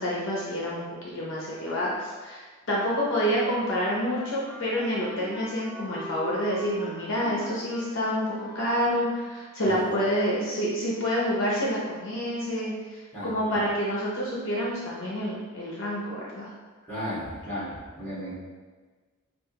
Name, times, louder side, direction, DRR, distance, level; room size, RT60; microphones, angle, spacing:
voice 1, 0.0-16.5, equal, 60° left, -5 dB, 0.7 m, -28 dB
Wind instrument woodwind instrument, 3.6-9.2, equal, 35° left, 1.3 m, -43 dB
voice 2, 13.1-13.6 16.9-18.3, equal, 10° left, -10 dB, 1.4 m, -35 dB
4.7 x 2.5 x 2.8 m, 1.4 s
head